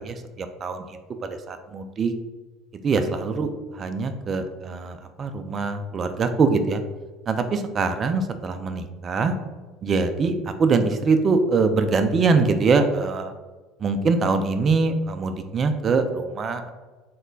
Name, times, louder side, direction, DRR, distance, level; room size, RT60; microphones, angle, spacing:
voice 1, 0.0-2.1 2.8-3.5 3.7-6.8 7.3-9.3 9.8-13.3 13.8-16.7, right 4 dB, 35° right, 8 dB, 0.4 m, -23 dB
3.2 x 2.1 x 3.7 m, 1.3 s
hypercardioid pair, 70°, 0 cm